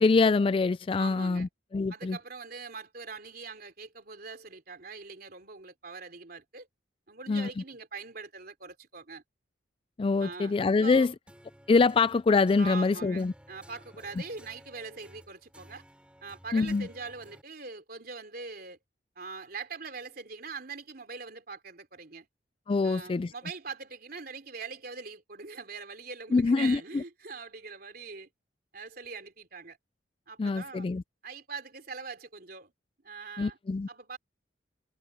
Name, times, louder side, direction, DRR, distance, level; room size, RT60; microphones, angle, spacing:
voice 1, 0.0-2.2 7.3-7.5 10.0-11.1 11.7-13.3 16.5-16.9 22.7-23.3 26.3-27.0 30.4-31.0 33.4-33.9, left 4 dB, 30° left, 0.3 m, -25 dB
voice 2, 1.0-1.5 1.9-6.7 7.1-9.2 10.2-11.2 12.6-15.8 16.2-18.8 19.2-22.3 22.8-28.3 28.7-29.8 30.3-30.9 31.2-32.7 33.0-33.6 33.9-34.2, right 4 dB, 55° right, 3.4 m, -42 dB
sound 1, 11.3-17.4, equal, 5° right, 7.1 m, -55 dB
head